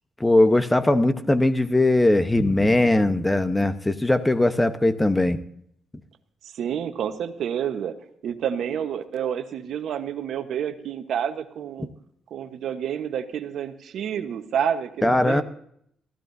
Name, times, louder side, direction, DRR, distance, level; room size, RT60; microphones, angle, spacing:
voice 1, 0.2-5.4 15.0-15.4, left 2 dB, 10° left, 10 dB, 1.0 m, -20 dB
voice 2, 6.4-7.9 8.2-11.9 12.3-15.4, right 8 dB, 70° right, 9 dB, 1.2 m, -29 dB
21.5 x 15.0 x 2.7 m, 0.68 s
cardioid pair, 90°, 0 cm